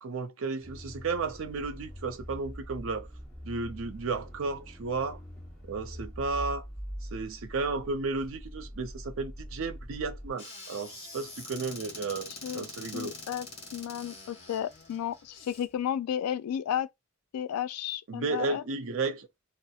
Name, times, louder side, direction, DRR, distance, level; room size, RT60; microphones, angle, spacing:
voice 1, 0.0-3.1 3.4-5.2 5.7-6.6 7.1-13.1 18.1-19.3, right 4 dB, 60° right, 0.4 m, -33 dB
sound 1, 0.6-10.3, equal, 5° left, 0.9 m, -43 dB
Squeak / Cupboard open or close, 10.4-15.7, left 2 dB, 30° left, 1.2 m, -45 dB
voice 2, 12.9-13.5 13.7-16.9 17.3-18.6, left 9 dB, 85° left, 0.3 m, -33 dB
2.7 x 2.0 x 2.3 m
head